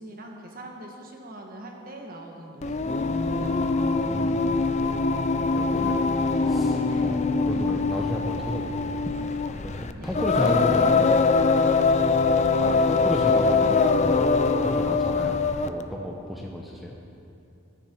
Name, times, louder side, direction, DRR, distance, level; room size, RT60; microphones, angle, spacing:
voice 1, 0.0-2.8 3.4-3.6 6.9-7.1 10.0-10.1, right 1 dB, 45° right, 1 dB, 1.5 m, -42 dB
Singing, 2.6-15.8, left 4 dB, 35° left, 0.5 m, -23 dB
voice 2, 4.0-4.4 5.5-6.1 6.4-11.1 12.6-14.2 14.6-16.9, equal, ahead, -1 dB, 0.8 m, -33 dB
15.0 x 10.5 x 4.6 m, 2.7 s
head